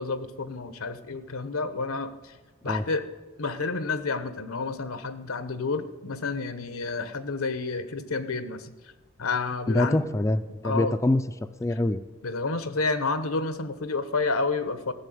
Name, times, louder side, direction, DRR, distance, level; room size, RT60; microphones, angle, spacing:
voice 1, 0.0-2.4 2.6-3.0 3.4-8.7 9.2-10.0 10.6-10.9 12.2-14.9, left 3 dB, 80° left, 12 dB, 1.1 m, -30 dB
voice 2, 9.7-11.2 11.6-12.0, left 1 dB, 15° left, 9 dB, 0.4 m, -24 dB
14.0 x 7.0 x 9.2 m, 1.2 s
head